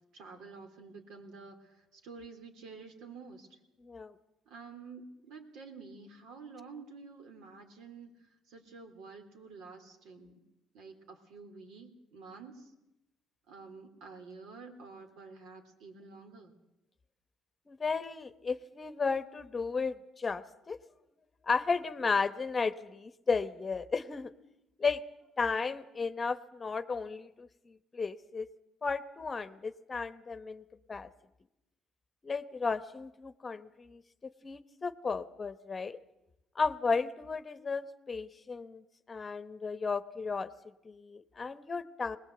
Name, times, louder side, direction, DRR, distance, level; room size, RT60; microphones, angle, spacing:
voice 1, 0.1-3.6 4.4-10.4 10.7-12.7 13.5-16.5, right 4 dB, 75° right, 5 dB, 3.5 m, -50 dB
voice 2, 3.8-4.1 17.7-20.8 21.5-24.3 24.8-25.0 25.4-28.5 28.8-30.6 30.9-31.1 32.2-36.0 36.5-40.5 40.8-42.2, left 4 dB, 25° left, 13 dB, 1.0 m, -34 dB
22.0 x 19.5 x 7.9 m, 0.92 s
cardioid pair, 110°, 0 cm